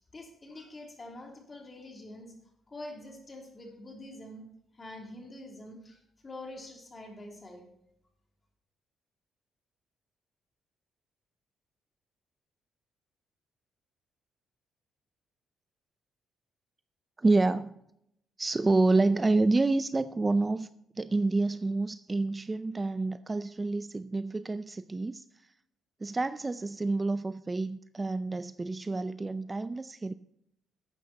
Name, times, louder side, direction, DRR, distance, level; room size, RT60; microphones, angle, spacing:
voice 1, 0.0-2.3 2.7-4.5 4.7-7.7, left 1 dB, 30° left, 3.2 m, -46 dB
voice 2, 17.2-17.8 18.4-20.7 21.0-25.2 26.0-30.1, right 3 dB, 20° right, 0.4 m, -28 dB
12.0 x 8.4 x 4.1 m
cardioid pair, 90°, 0 cm